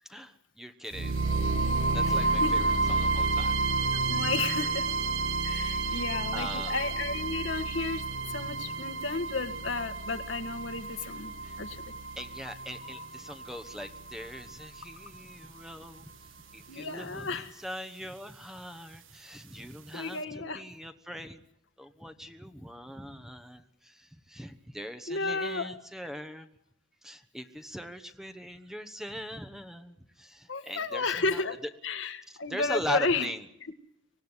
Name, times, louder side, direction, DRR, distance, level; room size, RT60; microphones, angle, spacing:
voice 1, 0.0-1.2 1.7-3.6 5.8-6.0 6.3-6.8 11.4-11.6 12.2-16.1 16.5-21.4 21.8-26.5 27.0-31.4 32.5-33.4, equal, ahead, 8 dB, 1.1 m, -41 dB
sound 1, 0.9-14.9, right 3 dB, 80° right, 1.5 m, -30 dB
voice 2, 2.0-2.5 4.1-4.9 5.4-11.3 11.6-11.9 12.9-13.0 16.7-17.6 19.9-20.6 25.1-25.7 30.5-31.6 31.8-33.3, left 3 dB, 65° left, 7 dB, 1.7 m, -33 dB
25.0 x 18.5 x 9.8 m, 0.80 s
head